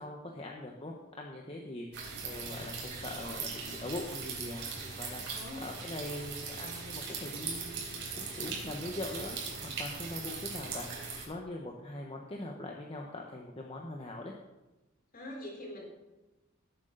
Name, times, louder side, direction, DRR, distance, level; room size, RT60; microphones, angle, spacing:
voice 1, 0.0-5.2 5.6-10.9 11.3-14.3, left 1 dB, 30° left, 0 dB, 1.0 m, -42 dB
sound 1, 1.9-11.2, right 4 dB, 60° right, 3.8 m, -40 dB
voice 2, 5.3-5.6 15.1-15.9, left 1 dB, 50° left, -1 dB, 3.6 m, -43 dB
18.0 x 8.2 x 3.9 m, 1.1 s
head